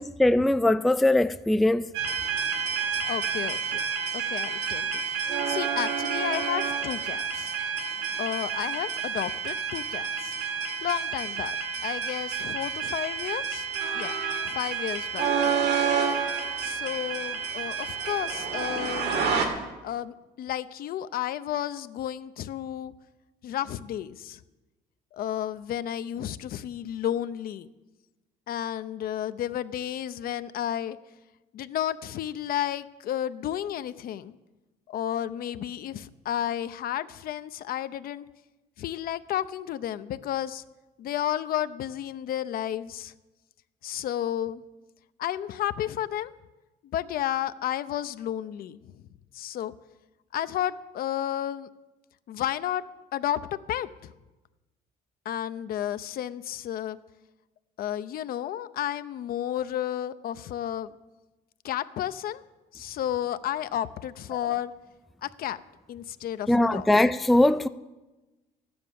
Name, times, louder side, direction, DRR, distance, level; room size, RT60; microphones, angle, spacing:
voice 1, 0.0-1.9 66.5-67.7, left 1 dB, ahead, 0.3 m, -21 dB
sound 1, 1.9-19.5, right 6 dB, 75° right, 2.3 m, -29 dB
voice 2, 3.1-3.8 4.1-5.0 5.5-7.5 8.2-10.4 10.8-11.6 11.8-13.7 13.9-14.1 14.4-15.6 16.6-19.2 19.8-22.9 23.4-24.4 25.1-27.7 28.5-31.0 31.5-34.4 34.9-38.2 38.8-40.6 41.0-43.1 43.8-44.6 45.2-46.3 46.9-49.0 49.3-49.7 50.3-51.7 52.3-52.8 53.1-54.1 55.3-57.0 57.8-60.9 61.6-62.4 62.7-64.7 65.2-65.6 65.9-66.9, left 11 dB, 60° left, 0.6 m, -32 dB
13.0 x 9.6 x 6.9 m
cardioid pair, 110°, 17 cm